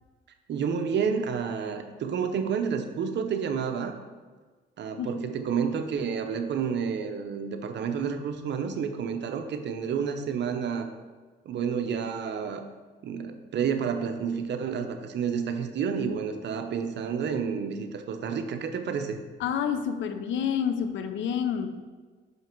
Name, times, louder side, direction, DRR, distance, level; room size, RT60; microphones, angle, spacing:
voice 1, 0.5-4.0 4.8-10.9 11.5-12.6 13.0-19.2, right 6 dB, 60° right, 7 dB, 0.7 m, -30 dB
voice 2, 19.4-21.7, left 8 dB, 70° left, 9 dB, 0.6 m, -28 dB
5.8 x 5.5 x 4.5 m, 1.4 s
cardioid pair, 90°, 20 cm